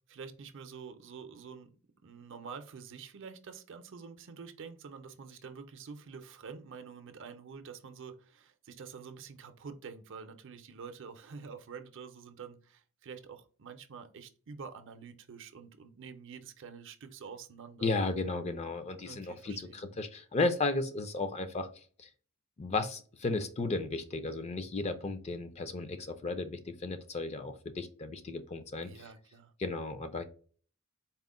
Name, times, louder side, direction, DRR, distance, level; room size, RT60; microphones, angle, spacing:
voice 1, 0.1-1.7 2.0-17.9 19.0-19.8 28.8-29.5, right 5 dB, 60° right, 0.5 m, -47 dB
voice 2, 17.8-21.7 22.0-22.1 22.6-29.0 29.6-30.2, left 3 dB, 30° left, 0.4 m, -34 dB
4.2 x 2.1 x 3.6 m
head